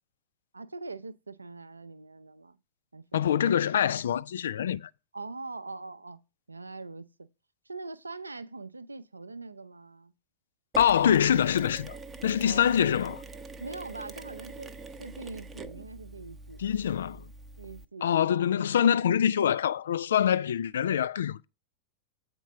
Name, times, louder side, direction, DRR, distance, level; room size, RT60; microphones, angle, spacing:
voice 1, 0.5-2.6 2.9-3.3 5.1-6.2 6.5-7.3 7.7-10.1 12.4-12.8 13.6-16.6 17.6-18.1 18.5-19.1, right 3 dB, 80° right, 0.5 m, -42 dB
voice 2, 3.1-4.9 10.8-12.0 12.2-13.2 16.6-17.3 18.0-21.4, left 9 dB, 65° left, 0.3 m, -25 dB
Mechanisms, 10.7-17.9, right 3 dB, 15° right, 0.7 m, -44 dB
8.2 x 4.5 x 5.8 m
figure-of-eight pair, 90°, 0 cm